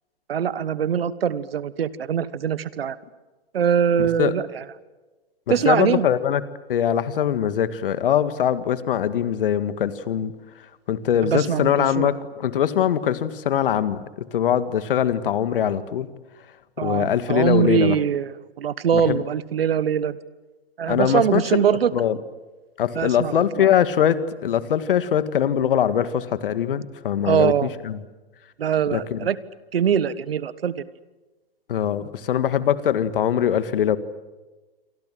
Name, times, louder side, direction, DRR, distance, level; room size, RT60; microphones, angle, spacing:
voice 1, 0.3-3.0 3.5-4.6 5.5-6.1 11.2-12.1 16.8-20.2 20.8-21.9 22.9-23.7 27.2-27.7 28.6-29.4 29.7-30.8, right 8 dB, 70° right, 17 dB, 1.4 m, -22 dB
voice 2, 5.7-6.4 6.7-10.3 10.9-16.1 16.8-18.0 18.9-19.2 20.9-21.6 21.9-22.2 22.8-28.0 28.9-29.2 31.7-34.0, left 9 dB, 60° left, 13 dB, 1.9 m, -22 dB
27.5 x 24.5 x 7.7 m, 1.2 s
figure-of-eight pair, 115°, 31 cm